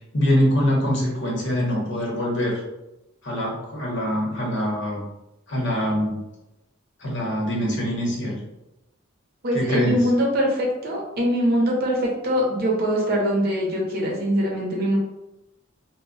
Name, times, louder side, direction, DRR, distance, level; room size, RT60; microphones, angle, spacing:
voice 1, 0.1-2.6 3.2-5.0 5.5-6.2 7.0-8.4 9.5-10.1, equal, 60° left, -3 dB, 0.9 m, -24 dB
voice 2, 9.4-15.0, equal, 50° right, -2 dB, 0.7 m, -22 dB
2.2 x 2.1 x 3.8 m, 0.93 s
head